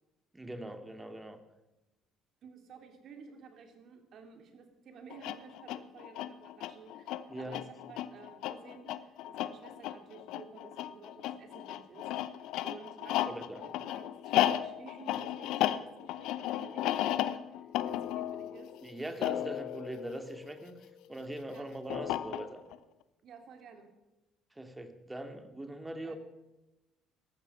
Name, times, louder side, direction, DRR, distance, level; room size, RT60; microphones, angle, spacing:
voice 1, 0.3-1.4 7.3-7.6 13.3-13.6 18.8-20.8 21.1-22.6 24.5-26.2, right 1 dB, 15° right, 7 dB, 2.4 m, -41 dB
voice 2, 2.4-7.6 7.9-18.7 21.5-22.0 23.2-23.9 26.0-26.2, right 5 dB, 55° right, 5 dB, 3.1 m, -53 dB
sound 1, 5.1-20.9 21.9-22.8, left 13 dB, 65° left, 0.7 m, -34 dB
17.5 x 14.0 x 5.8 m, 0.99 s
hypercardioid pair, 50°, 0 cm